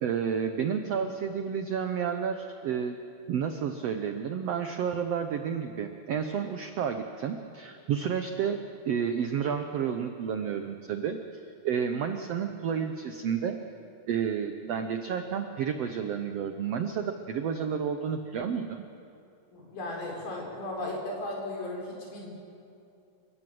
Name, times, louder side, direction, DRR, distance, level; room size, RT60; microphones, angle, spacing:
voice 1, 0.0-3.0 3.3-11.2 11.6-13.6 14.1-18.8, right 7 dB, 80° right, 7 dB, 1.4 m, -31 dB
voice 2, 19.5-22.3, left 1 dB, 90° left, -2 dB, 6.6 m, -36 dB
29.5 x 17.0 x 7.8 m, 2.6 s
omnidirectional pair, 4.2 m